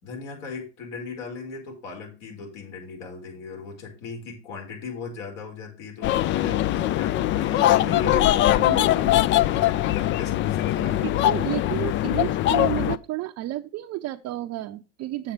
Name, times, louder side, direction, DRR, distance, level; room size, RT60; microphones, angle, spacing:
voice 1, 0.0-11.1, left 4 dB, 65° left, 0 dB, 5.0 m, -37 dB
sound 1, 6.0-13.0, left 14 dB, 30° left, 0.4 m, -22 dB
voice 2, 11.0-15.3, right 16 dB, 45° right, 4 dB, 0.7 m, -31 dB
7.4 x 7.2 x 5.2 m, 0.33 s
hypercardioid pair, 90°, 37 cm